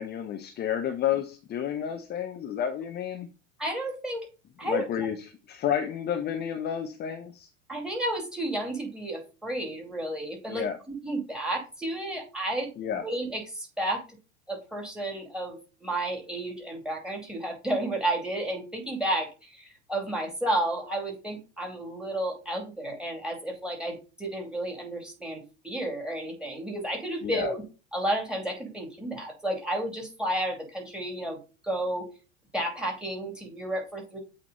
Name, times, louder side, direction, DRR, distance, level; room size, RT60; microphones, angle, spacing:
voice 1, 0.0-3.3 4.6-7.5 10.5-10.8 12.8-13.0 27.2-27.5, left 9 dB, 25° left, 6 dB, 0.7 m, -31 dB
voice 2, 3.6-4.3 4.6-4.8 7.7-12.7 13.0-14.0 14.5-27.6 27.9-31.4 31.6-32.0 32.5-34.2, right 1 dB, ahead, 2 dB, 2.6 m, -32 dB
8.3 x 2.9 x 4.0 m, 0.31 s
figure-of-eight pair, 80°, 37 cm